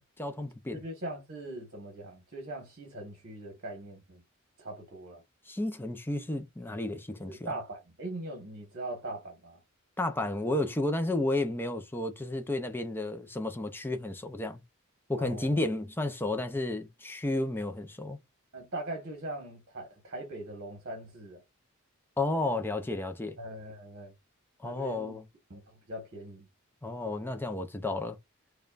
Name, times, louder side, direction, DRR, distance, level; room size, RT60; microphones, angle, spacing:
voice 1, 0.2-0.8 5.5-7.5 10.0-14.6 15.1-18.2 22.2-23.4 24.6-25.2 26.8-28.2, left 2 dB, 10° left, 0.5 m, -32 dB
voice 2, 0.7-4.2 4.6-5.2 7.2-9.6 15.2-15.6 18.5-21.4 23.4-24.1 24.6-25.2 25.5-26.5, right 1 dB, 50° right, 1.4 m, -41 dB
5.2 x 2.3 x 2.5 m
head